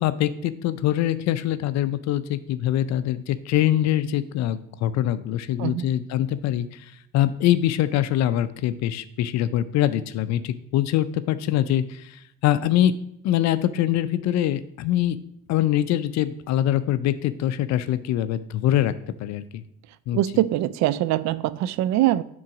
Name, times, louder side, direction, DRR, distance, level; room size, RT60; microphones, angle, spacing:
voice 1, 0.0-12.9 13.2-15.2 15.5-18.9 19.2-19.6 20.1-20.2, left 12 dB, 65° left, 13 dB, 0.5 m, -23 dB
voice 2, 20.1-22.2, right 14 dB, 65° right, 18 dB, 0.4 m, -23 dB
7.5 x 3.9 x 5.9 m, 0.75 s
supercardioid pair, 75°, 30 cm